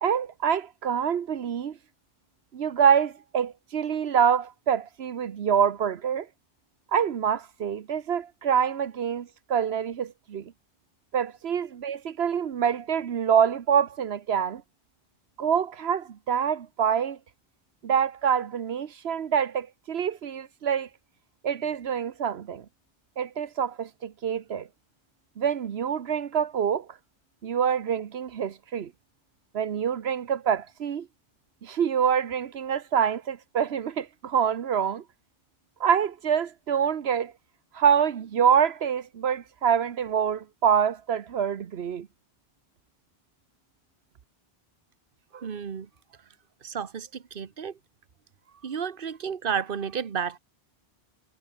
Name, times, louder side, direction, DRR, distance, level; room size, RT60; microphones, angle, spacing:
voice 1, 0.0-1.7 2.5-6.3 6.9-10.4 11.1-14.6 15.4-17.2 17.8-20.9 21.4-22.6 23.2-24.7 25.4-26.9 27.4-28.9 29.5-31.1 31.6-35.0 35.8-37.3 37.7-42.1, right 8 dB, 85° right, 1.2 m, -26 dB
voice 2, 45.3-45.9 46.6-47.8 48.6-50.4, right 7 dB, 60° right, 1.3 m, -32 dB
omnidirectional pair, 1.0 m